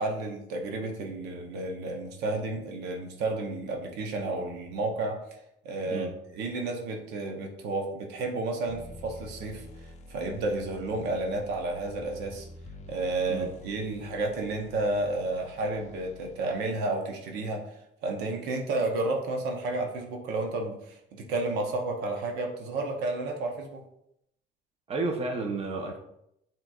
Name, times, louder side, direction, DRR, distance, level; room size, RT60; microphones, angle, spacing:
voice 1, 0.0-5.2 5.6-12.5 12.9-17.6 18.0-23.8, right 2 dB, 85° right, 2 dB, 0.8 m, -31 dB
sound 1, 8.7-16.6, left 1 dB, 45° left, 0.5 m, -48 dB
voice 2, 24.9-26.0, right 3 dB, 35° right, 2 dB, 0.8 m, -31 dB
5.9 x 3.0 x 2.3 m, 0.78 s
cardioid pair, 110°, 17 cm